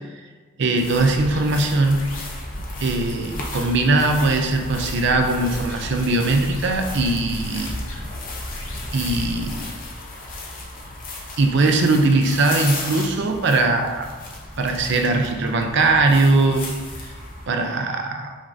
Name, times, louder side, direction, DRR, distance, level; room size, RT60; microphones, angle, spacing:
voice 1, 0.6-2.1 2.8-7.8 8.9-9.7 11.4-14.1 14.6-16.7 17.0-17.1 17.5-18.4, right 2 dB, 55° right, 4 dB, 0.5 m, -20 dB
sound 1, 0.8-17.5, left 2 dB, 40° left, 0.6 m, -35 dB
sound 2, 0.9-9.7, equal, 75° left, 0.7 m, -35 dB
5.2 x 3.6 x 2.6 m, 1.3 s
head